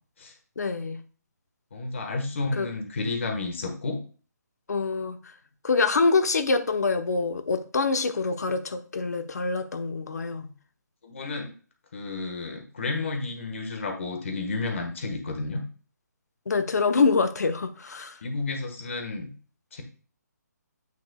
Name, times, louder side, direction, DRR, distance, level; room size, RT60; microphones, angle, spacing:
voice 1, 0.6-1.0 2.6-2.7 4.7-5.2 5.6-10.5 16.5-18.2, left 4 dB, 65° left, 1.0 m, -25 dB
voice 2, 1.7-4.0 11.0-11.5 11.9-15.6 18.2-19.3 19.7-19.8, left 3 dB, 45° left, 1.5 m, -31 dB
9.4 x 5.3 x 2.3 m
hypercardioid pair, 175°, 10 cm